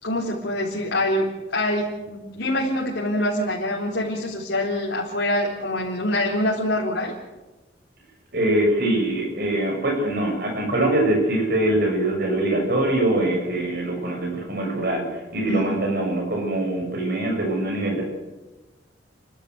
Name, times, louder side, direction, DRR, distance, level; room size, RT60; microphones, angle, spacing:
voice 1, 0.0-7.1 15.5-15.7, left 1 dB, 75° left, -5 dB, 4.2 m, -25 dB
voice 2, 8.3-18.0, right 1 dB, 55° right, 1 dB, 6.8 m, -23 dB
30.0 x 12.5 x 8.1 m, 1.1 s
head